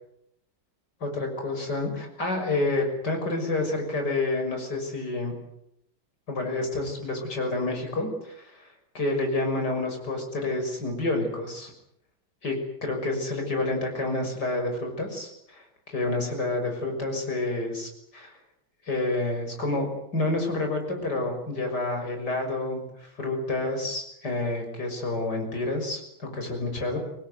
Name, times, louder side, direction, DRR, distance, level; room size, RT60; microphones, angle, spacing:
voice 1, 1.0-5.3 6.3-8.7 8.9-11.7 12.4-18.4 18.8-27.0, left 2 dB, 55° left, 3 dB, 6.9 m, -29 dB
25.5 x 19.5 x 9.5 m, 0.77 s
omnidirectional pair, 2.1 m